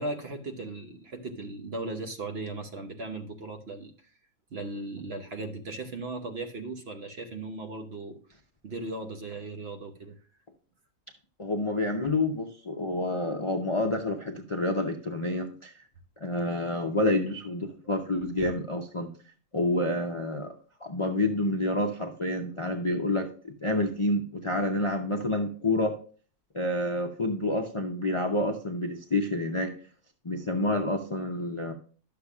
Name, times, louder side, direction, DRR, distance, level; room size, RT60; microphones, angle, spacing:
voice 1, 0.0-3.9 4.5-8.2 8.6-10.2 17.8-17.9, right 2 dB, 50° right, 5 dB, 1.0 m, -37 dB
voice 2, 11.4-15.7 16.2-19.1 19.5-20.5 20.8-25.9 26.5-29.7 30.2-31.7, left 1 dB, 35° left, 3 dB, 0.5 m, -28 dB
11.5 x 6.8 x 2.4 m, 0.41 s
omnidirectional pair, 1.5 m